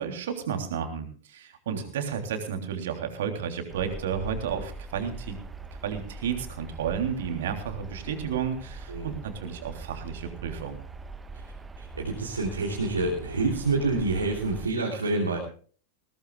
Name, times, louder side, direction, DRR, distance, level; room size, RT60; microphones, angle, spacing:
voice 1, 0.0-5.4 5.8-10.8, right 7 dB, 60° right, 5 dB, 3.3 m, -32 dB
sound 1, 3.7-14.7, right 3 dB, 15° right, 1.3 m, -42 dB
voice 2, 11.8-15.4, right 3 dB, 75° right, -2 dB, 3.2 m, -27 dB
21.5 x 17.5 x 2.4 m, 0.43 s
figure-of-eight pair, 90°, 0 cm